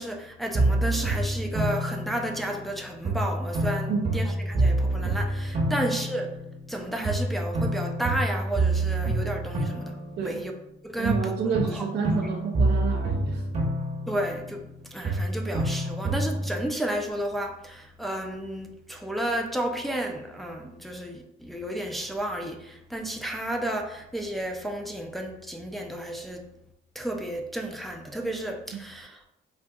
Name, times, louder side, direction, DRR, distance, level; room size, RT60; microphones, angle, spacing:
voice 1, 0.0-6.3 6.7-10.0 10.2-10.5 10.8-11.8 14.1-14.7 14.9-26.5 27.0-29.3, right 1 dB, ahead, 2 dB, 0.4 m, -32 dB
sound 1, 0.5-2.7 3.0-6.8 7.0-10.7 11.0-14.8 15.0-16.6, right 2 dB, 35° right, 0.8 m, -27 dB
voice 2, 11.0-13.5, right 5 dB, 60° right, 2 dB, 0.4 m, -29 dB
3.8 x 2.5 x 2.3 m, 0.83 s
cardioid pair, 90°, 20 cm